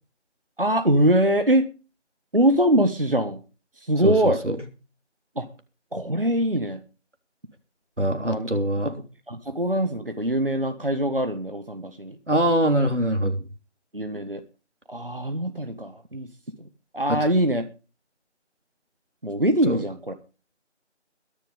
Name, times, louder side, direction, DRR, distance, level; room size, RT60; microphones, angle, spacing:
voice 1, 0.6-1.7 2.3-3.4 3.8-4.4 5.3-5.5 5.9-6.8 8.2-8.5 9.3-12.2 13.9-14.4 14.9-16.3 16.9-17.6 19.2-20.1, right 1 dB, 50° right, 7 dB, 1.6 m, -23 dB
voice 2, 4.0-4.6 8.0-8.9 12.3-13.4 19.7-19.8, right 1 dB, 85° right, 6 dB, 3.6 m, -23 dB
22.0 x 7.4 x 5.1 m, 0.34 s
figure-of-eight pair, 175°, 35 cm